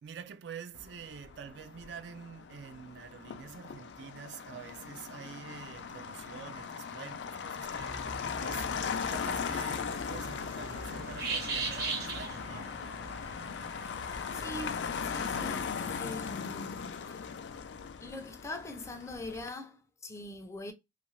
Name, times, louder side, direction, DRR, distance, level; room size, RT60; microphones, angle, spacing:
voice 1, 0.0-12.8, right 7 dB, 75° right, 0.3 m, -47 dB
Motor vehicle (road), 0.7-19.5, left 6 dB, 80° left, 0.4 m, -38 dB
sound 1, 7.8-15.7, right 4 dB, 60° right, 0.8 m, -41 dB
voice 2, 14.3-16.8 18.0-20.7, left 2 dB, 15° left, 0.4 m, -42 dB
2.6 x 2.5 x 3.0 m
head